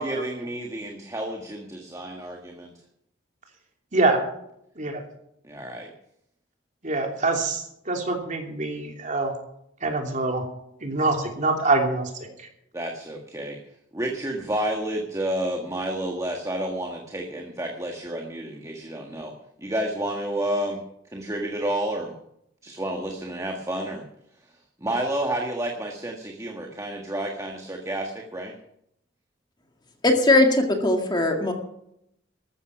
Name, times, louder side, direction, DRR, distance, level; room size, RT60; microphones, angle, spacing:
voice 1, 0.0-2.7 5.4-5.9 12.7-13.6 13.9-20.8 21.1-22.1 22.6-24.0 24.8-28.5, right 1 dB, 15° right, 2 dB, 1.5 m, -30 dB
voice 2, 6.8-9.3 9.8-10.4 10.8-12.1, right 3 dB, 40° right, 2 dB, 3.1 m, -25 dB
voice 3, 30.0-31.5, left 2 dB, 20° left, 3 dB, 2.0 m, -19 dB
14.0 x 13.0 x 6.0 m, 0.75 s
head